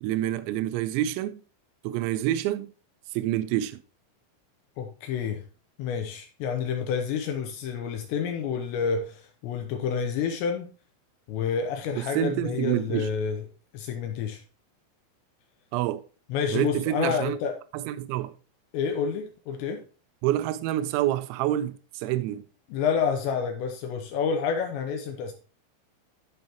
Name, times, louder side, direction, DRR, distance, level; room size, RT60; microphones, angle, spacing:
voice 1, 0.0-1.4 1.8-2.7 3.1-3.8 12.0-13.1 15.7-16.0 16.5-17.4 17.7-18.4 20.2-22.5, right 13 dB, 90° right, 2.6 m, -27 dB
voice 2, 4.8-5.4 5.8-10.7 11.3-13.4 13.7-14.4 16.3-17.5 18.7-19.8 22.7-25.3, left 6 dB, 80° left, 2.7 m, -29 dB
14.0 x 5.3 x 2.9 m
omnidirectional pair, 5.8 m